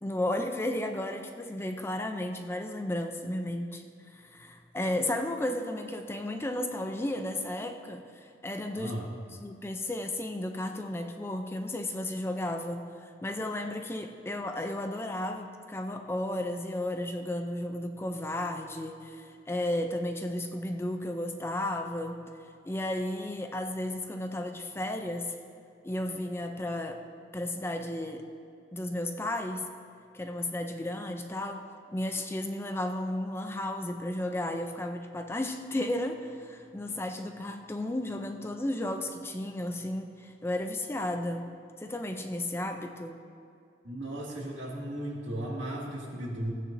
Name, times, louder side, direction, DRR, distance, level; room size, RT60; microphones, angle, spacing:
voice 1, 0.0-8.0 8.4-9.0 9.3-22.2 22.6-25.3 25.8-27.0 27.3-28.3 28.7-29.7 30.1-31.6 31.9-43.2, left 1 dB, 15° left, 5 dB, 0.4 m, -33 dB
voice 2, 8.8-9.1 43.8-46.5, right 1 dB, 90° right, -3 dB, 2.1 m, -36 dB
16.0 x 9.2 x 2.6 m, 2.5 s
head